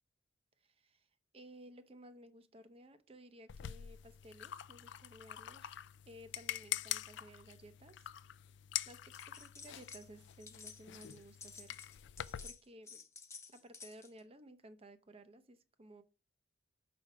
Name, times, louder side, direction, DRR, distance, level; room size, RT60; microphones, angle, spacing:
voice 1, 0.6-1.1 1.3-5.8 6.1-8.1 8.8-11.9 12.4-13.0 13.5-16.0, right 1 dB, 30° right, 0.7 m, -56 dB
sound 1, 3.5-12.5, left 12 dB, 65° left, 0.3 m, -45 dB
sound 2, 9.1-10.1 10.3-14.2, left 5 dB, 15° left, 0.6 m, -53 dB
6.0 x 5.2 x 4.6 m
head